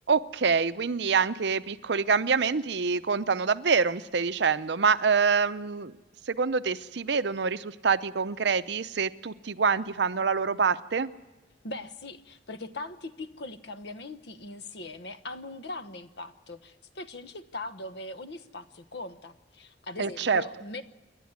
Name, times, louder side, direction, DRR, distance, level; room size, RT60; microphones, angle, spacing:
voice 1, 0.1-5.9 6.3-11.1 20.0-20.4, right 5 dB, 65° right, 13 dB, 0.7 m, -26 dB
voice 2, 11.6-20.8, left 2 dB, 65° left, 11 dB, 1.1 m, -40 dB
28.0 x 11.5 x 9.6 m, 1.1 s
head